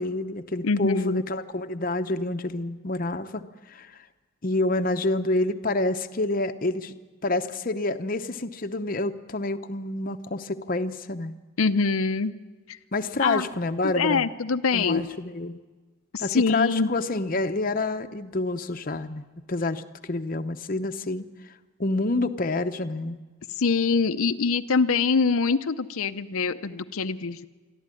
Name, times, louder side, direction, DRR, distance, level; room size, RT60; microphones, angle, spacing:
voice 1, 0.0-3.4 3.7-3.9 4.4-6.9 7.2-11.4 12.9-14.3 14.7-15.6 16.2-19.2 19.5-21.3 21.8-23.2, left 2 dB, 40° left, 8 dB, 0.8 m, -28 dB
voice 2, 0.6-1.2 11.6-12.3 12.7-12.8 13.2-13.5 13.8-15.0 16.1-16.9 23.6-27.5, left 4 dB, 75° left, 9 dB, 0.7 m, -24 dB
23.5 x 14.0 x 9.8 m, 1.3 s
head